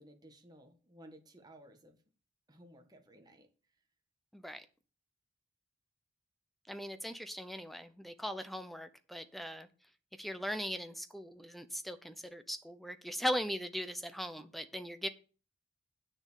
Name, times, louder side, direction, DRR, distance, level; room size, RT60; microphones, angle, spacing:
voice 1, 0.0-2.0 2.5-3.5, right 1 dB, 20° right, 4 dB, 1.6 m, -57 dB
voice 2, 4.3-4.6 6.7-9.7 10.2-15.1, equal, ahead, 10 dB, 0.7 m, -39 dB
8.9 x 6.5 x 6.5 m, 0.38 s
head